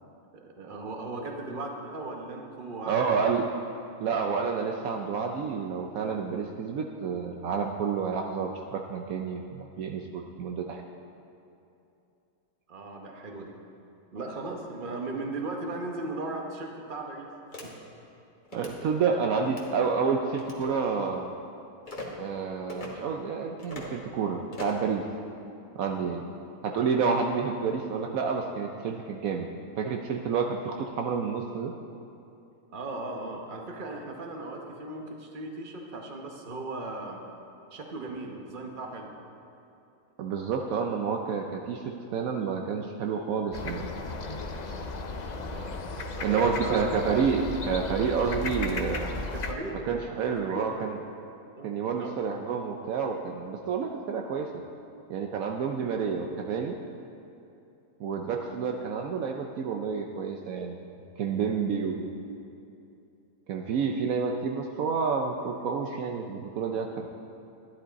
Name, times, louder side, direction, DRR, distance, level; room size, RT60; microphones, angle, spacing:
voice 1, 0.3-3.4 12.7-13.6 14.1-17.3 17.6-17.7 32.7-37.2 37.7-39.1 45.5-45.8 46.1-46.9 47.2-47.3 49.3-49.8 50.3-50.9 51.6-52.2, right 2 dB, 35° right, 2 dB, 1.1 m, -37 dB
voice 2, 2.9-3.5 4.0-10.8 18.5-21.3 22.2-25.0 25.7-26.2 26.6-29.5 29.8-31.7 40.2-43.8 46.2-49.2 49.7-51.0 51.6-54.5 55.1-56.7 58.0-60.8 61.2-62.1 63.5-67.1, right 5 dB, 70° right, 3 dB, 1.0 m, -29 dB
sound 1, 17.5-17.7 18.5-18.8 19.4-19.7 20.4-20.7 21.9-22.1 22.7-22.9 23.6-23.9 24.5-24.9, left 2 dB, 35° left, 1.5 m, -40 dB
sound 2, 43.5-49.5, left 3 dB, 55° left, 0.4 m, -35 dB
11.5 x 11.0 x 4.0 m, 2.8 s
omnidirectional pair, 1.6 m